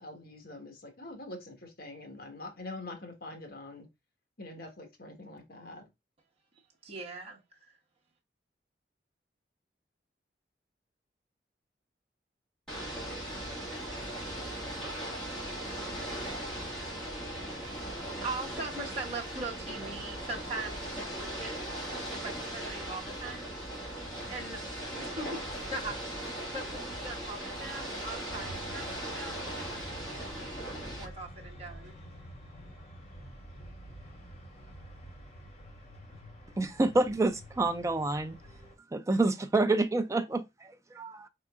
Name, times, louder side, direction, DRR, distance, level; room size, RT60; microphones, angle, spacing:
voice 1, 0.0-3.8 4.4-5.9, left 2 dB, 55° left, 1.3 m, -44 dB
voice 2, 6.8-7.4 17.4-17.9 18.2-21.6 22.1-23.5 24.0-30.6 31.0-32.0, right 3 dB, 35° right, 1.1 m, -41 dB
Ocean / Boat Water vehicle, 12.7-31.1, right 1 dB, 5° left, 2.0 m, -38 dB
sound 1, 28.3-38.8, right 1 dB, 40° left, 2.7 m, -49 dB
voice 3, 36.6-38.4 38.9-41.3, right 2 dB, 15° right, 0.3 m, -28 dB
4.5 x 3.7 x 2.4 m
head